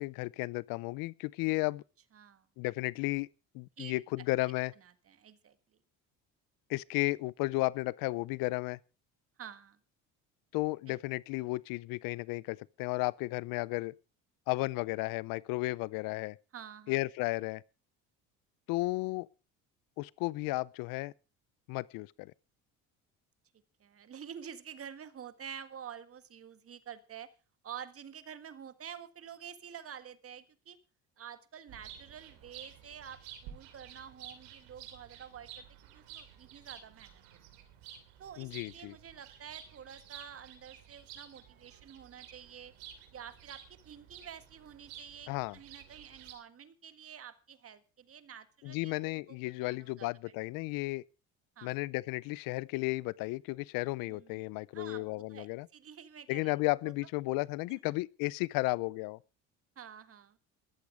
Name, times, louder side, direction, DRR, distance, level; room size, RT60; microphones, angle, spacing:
voice 1, 0.0-1.8 2.6-3.3 3.5-4.7 6.7-8.8 10.5-13.9 14.5-16.4 16.9-17.6 18.7-19.3 20.0-21.1 21.7-22.3 38.4-39.0 45.3-45.6 48.6-51.0 51.6-55.7 56.3-59.2, left 22 dB, 80° left, 0.6 m, -34 dB
voice 2, 2.1-2.4 3.8-3.9 4.8-5.5 9.4-9.8 10.9-11.0 16.5-16.9 23.8-27.3 27.6-30.8 31.2-35.6 35.9-37.2 38.2-42.7 43.1-50.1 51.6-51.7 54.1-54.4 54.7-56.5 57.7-57.8 59.7-60.4, right 8 dB, 40° right, 1.7 m, -49 dB
sound 1, 31.7-46.3, right 9 dB, 90° right, 3.0 m, -52 dB
14.5 x 12.0 x 5.0 m
supercardioid pair, 95°, 34 cm